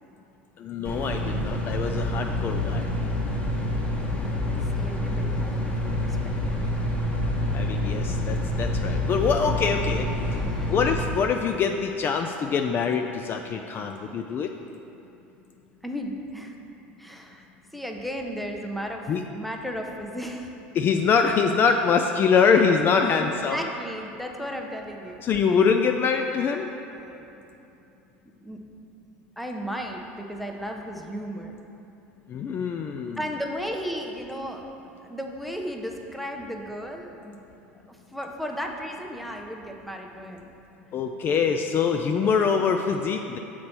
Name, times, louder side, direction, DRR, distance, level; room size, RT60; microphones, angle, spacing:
voice 1, 0.6-2.8 7.5-10.1 10.7-14.5 19.1-19.2 20.7-23.6 25.2-26.7 32.3-33.2 40.9-43.4, left 6 dB, 40° left, 4 dB, 0.3 m, -24 dB
sound 1, 0.8-11.0, left 1 dB, 20° left, 1.2 m, -27 dB
voice 2, 4.7-6.2 6.5-6.6 10.2-10.7 15.8-16.6 17.0-17.4 17.7-20.5 23.1-25.2 26.6-27.6 28.4-28.6 29.4-31.5 33.2-34.7 35.0-37.4 37.9-40.5, equal, ahead, 2 dB, 0.7 m, -35 dB
7.4 x 4.3 x 4.4 m, 2.8 s
hypercardioid pair, 80°, 6 cm